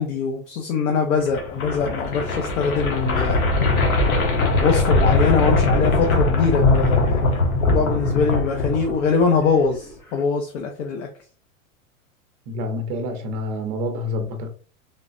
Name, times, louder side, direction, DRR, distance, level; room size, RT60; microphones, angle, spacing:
voice 1, 0.0-3.5 4.6-11.1, left 5 dB, 65° left, 0.7 m, -23 dB
sound 1, 1.2-9.2, left 2 dB, 90° left, 0.9 m, -20 dB
Wild animals, 3.7-6.2 7.7-10.2, left 1 dB, 10° left, 0.7 m, -41 dB
voice 2, 12.5-14.5, left 1 dB, 30° right, 0.6 m, -27 dB
3.2 x 2.0 x 2.5 m
supercardioid pair, 150°, 41 cm